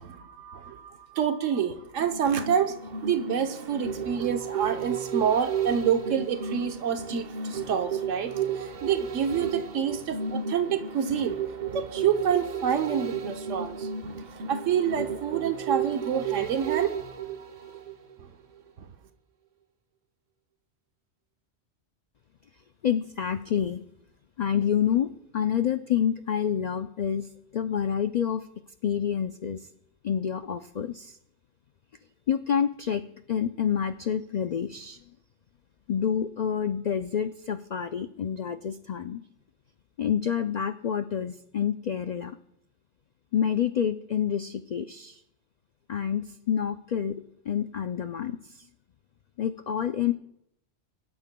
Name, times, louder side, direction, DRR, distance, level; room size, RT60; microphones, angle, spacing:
voice 1, 0.0-8.3 8.6-11.4 11.7-14.2 14.5-17.7, right 8 dB, 85° right, 1.2 m, -28 dB
sound 1, 2.0-18.2 18.6-18.7, right 7 dB, 45° right, 0.8 m, -33 dB
voice 2, 22.8-23.8 24.4-28.5 28.8-29.7 30.0-31.2 32.3-33.0 33.3-35.0 35.9-39.2 40.0-42.4 43.3-45.2 45.9-48.7 49.4-50.1, left 8 dB, 75° left, 0.3 m, -28 dB
22.0 x 12.5 x 2.2 m
omnidirectional pair, 1.3 m